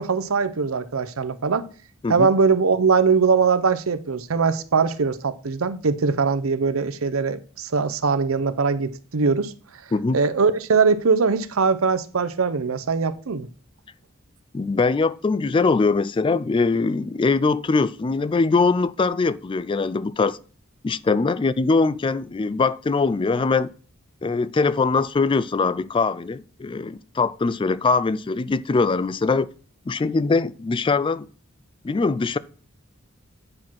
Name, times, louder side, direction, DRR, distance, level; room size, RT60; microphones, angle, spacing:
voice 1, 0.0-1.7 2.1-9.5 10.1-13.5, right 5 dB, 85° right, 0.7 m, -21 dB
voice 2, 14.5-20.4 20.8-23.7 24.2-29.5 29.9-31.3 31.8-32.4, left 4 dB, 25° left, 0.3 m, -22 dB
9.6 x 4.5 x 5.9 m
head